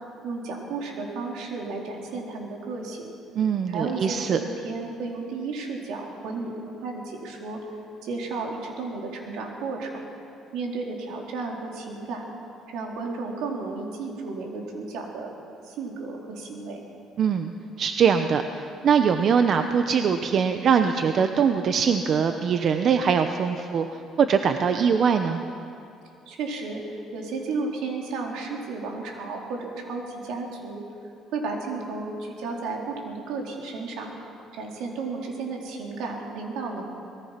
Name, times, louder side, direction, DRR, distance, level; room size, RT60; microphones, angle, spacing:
voice 1, 0.2-3.1 3.7-7.6 8.0-10.1 10.5-12.2 12.7-15.3 15.6-16.8 26.3-30.8 31.3-34.1 34.5-36.8, right 3 dB, 80° right, 0 dB, 4.0 m, -33 dB
voice 2, 3.3-4.4 17.2-17.5 17.8-25.4, right 6 dB, 50° right, 7 dB, 0.9 m, -22 dB
24.5 x 20.0 x 6.0 m, 2.7 s
cardioid pair, 125°, 0 cm